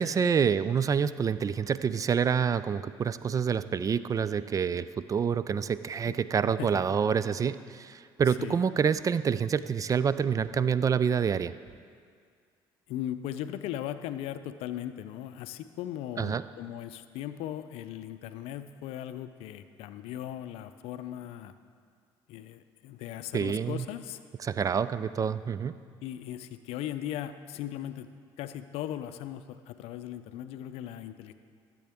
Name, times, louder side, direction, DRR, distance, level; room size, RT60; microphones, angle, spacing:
voice 1, 0.0-11.5 16.2-16.4 23.3-23.9 24.4-25.7, right 7 dB, 35° right, 15 dB, 0.3 m, -27 dB
voice 2, 6.5-6.8 8.3-8.6 12.9-21.5 22.3-24.2 26.0-28.1 28.4-31.3, left 11 dB, 75° left, 11 dB, 0.5 m, -38 dB
13.5 x 7.6 x 3.5 m, 2.1 s
supercardioid pair, 75°, 10 cm